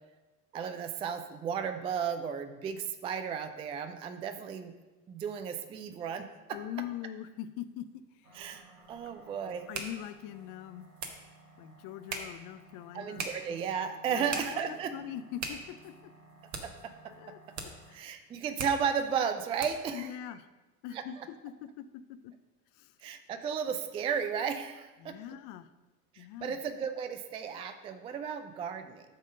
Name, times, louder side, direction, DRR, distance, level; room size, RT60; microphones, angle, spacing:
voice 1, 0.5-4.7 5.1-6.6 8.3-8.6 8.9-9.7 12.9-14.9 16.6-16.9 17.9-20.1 20.9-21.0 23.0-25.2 26.1-29.0, right 7 dB, 15° right, 9 dB, 0.3 m, -34 dB
voice 2, 6.5-8.4 9.7-10.9 11.6-13.3 14.1-16.1 17.2-18.1 19.9-20.5 20.8-22.3 22.7-23.0 25.0-25.7 26.2-26.6, left 11 dB, 45° left, 12 dB, 0.6 m, -43 dB
sound 1, 8.2-17.9, right 2 dB, 60° right, 1.8 m, -58 dB
sound 2, 8.4-20.0, right 4 dB, 35° right, 1.4 m, -44 dB
8.7 x 3.6 x 6.3 m, 1.2 s
hypercardioid pair, 80°, 47 cm